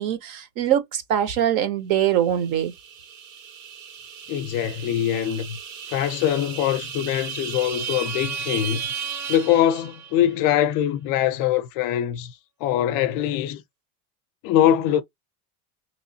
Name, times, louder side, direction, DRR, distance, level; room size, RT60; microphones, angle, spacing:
voice 1, 0.0-2.7, right 10 dB, 45° right, 0.8 m, -23 dB
sound 1, 2.3-10.3, right 7 dB, 75° right, 1.5 m, -35 dB
voice 2, 4.3-5.6 5.9-8.8 9.3-12.3 12.6-13.6 14.4-15.0, left 11 dB, 45° left, 0.5 m, -23 dB
3.5 x 3.1 x 2.7 m
supercardioid pair, 140°, 45 cm